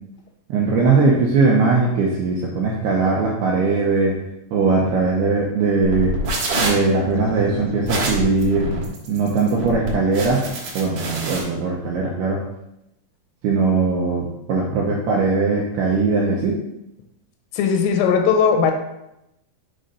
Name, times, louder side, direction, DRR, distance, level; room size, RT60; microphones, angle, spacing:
voice 1, 0.5-4.1 4.5-6.1 6.6-8.7 9.1-10.5 10.8-12.4 13.4-16.6, right 4 dB, 80° right, -3 dB, 2.3 m, -20 dB
sound 1, 5.8-11.4, right 2 dB, 55° right, 2.6 m, -26 dB
voice 2, 17.5-18.7, left 6 dB, 90° left, 4 dB, 3.5 m, -18 dB
7.7 x 3.9 x 5.4 m, 0.87 s
omnidirectional pair, 5.7 m